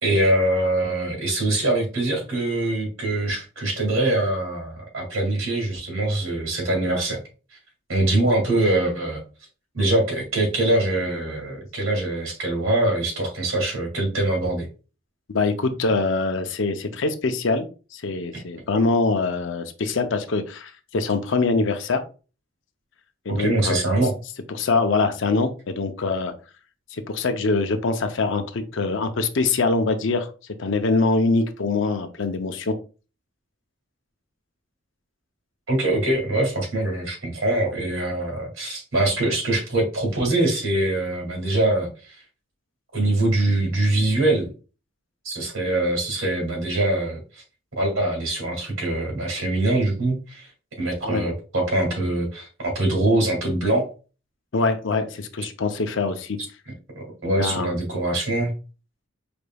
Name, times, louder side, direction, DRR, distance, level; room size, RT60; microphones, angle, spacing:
voice 1, 0.0-7.2 7.9-9.2 9.7-14.7 18.3-18.4 23.3-24.1 35.7-42.2 42.9-44.5 45.2-47.4 47.8-50.5 50.8-53.9 57.0-58.5, right 2 dB, 80° right, 0 dB, 2.3 m, -23 dB
voice 2, 15.3-22.0 23.3-23.8 24.5-26.3 26.9-30.3 30.6-32.8 51.0-51.2 54.5-56.4 57.4-57.7, left 3 dB, 65° left, 7 dB, 0.5 m, -24 dB
4.9 x 3.3 x 2.3 m, 0.34 s
head